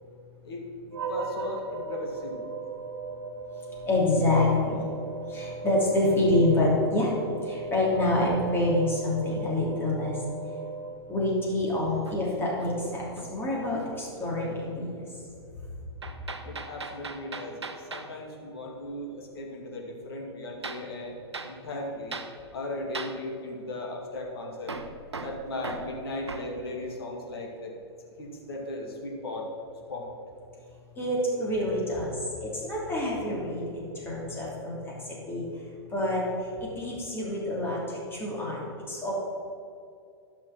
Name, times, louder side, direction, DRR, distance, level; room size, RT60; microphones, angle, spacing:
voice 1, 0.9-2.4 16.4-21.1 21.4-22.2 22.5-24.7 25.2-27.7 28.2-29.4 29.9-30.1, left 2 dB, 65° left, 0 dB, 2.4 m, -37 dB
sound 1, 0.9-11.5, right 4 dB, 60° right, 1.8 m, -38 dB
voice 2, 3.9-4.8 5.3-7.1 7.4-10.1 11.1-14.9 31.0-32.1 32.4-34.8 35.3-35.4 35.9-36.2 36.8-39.1, left 1 dB, 15° left, -5 dB, 3.0 m, -27 dB
Hammer, 12.0-13.5 13.8-14.1 16.0-18.1 20.6-20.9 21.3-21.6 22.1-22.4 22.9-23.2 24.7-26.5, right 4 dB, 80° right, 0.8 m, -39 dB
12.5 x 6.0 x 6.0 m, 2.5 s
figure-of-eight pair, 105°, 14 cm